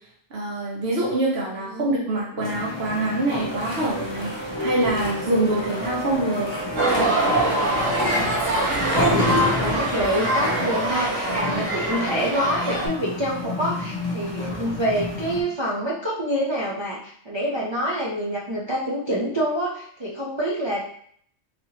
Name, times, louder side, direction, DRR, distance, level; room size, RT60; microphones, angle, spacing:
voice 1, 0.3-6.5, right 2 dB, 55° right, -3 dB, 1.0 m, -25 dB
voice 2, 1.6-2.1 9.2-21.0, equal, 40° right, -5 dB, 0.4 m, -27 dB
sound 1, 2.3-13.9, left 1 dB, 65° left, 1.0 m, -35 dB
sound 2, 2.4-15.4, left 2 dB, 40° left, 0.4 m, -30 dB
sound 3, 6.8-12.9, right 1 dB, 80° right, 1.4 m, -23 dB
4.0 x 2.9 x 2.8 m, 0.62 s
omnidirectional pair, 1.3 m